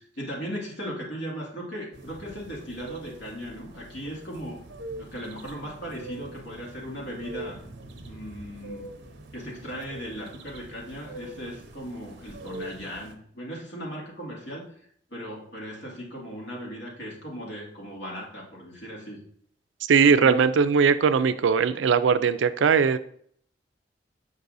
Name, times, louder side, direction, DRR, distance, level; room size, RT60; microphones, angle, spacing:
voice 1, 0.0-4.6 5.0-7.6 8.0-8.9 9.3-14.7 15.1-19.2 20.0-20.5, equal, 65° left, -3 dB, 2.2 m, -37 dB
sound 1, 1.9-13.2, right 1 dB, 65° right, 0.8 m, -43 dB
voice 2, 19.8-23.0, right 6 dB, 85° right, 14 dB, 0.4 m, -20 dB
8.1 x 5.3 x 2.6 m, 0.63 s
head